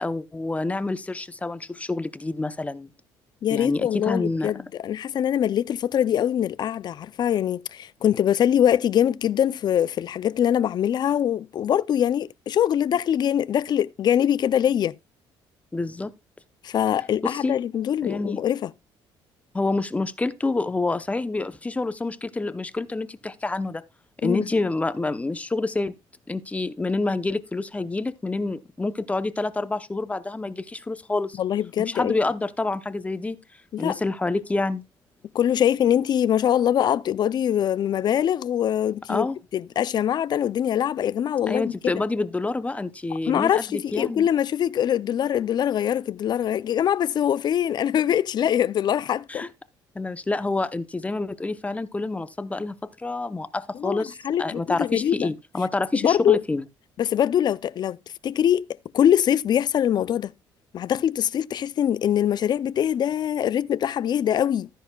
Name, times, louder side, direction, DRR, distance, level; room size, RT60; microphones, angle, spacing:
voice 1, 0.0-2.9 3.5-4.5 15.7-16.1 17.2-17.6 18.0-18.4 19.5-23.8 24.2-25.9 26.3-31.4 31.8-33.4 33.8-34.8 39.1-39.4 41.5-44.3 49.3-49.5 49.9-56.6, left 2 dB, 15° left, 0.7 m, -27 dB
voice 2, 3.4-14.9 16.6-18.7 24.2-24.5 31.4-32.1 33.7-34.0 35.3-39.3 39.5-41.7 43.3-49.5 53.7-55.3 55.9-56.4 57.0-58.0 58.2-58.7 58.9-60.3 60.7-64.7, left 10 dB, 50° left, 0.5 m, -23 dB
13.5 x 10.0 x 2.3 m
cardioid pair, 100°, 10 cm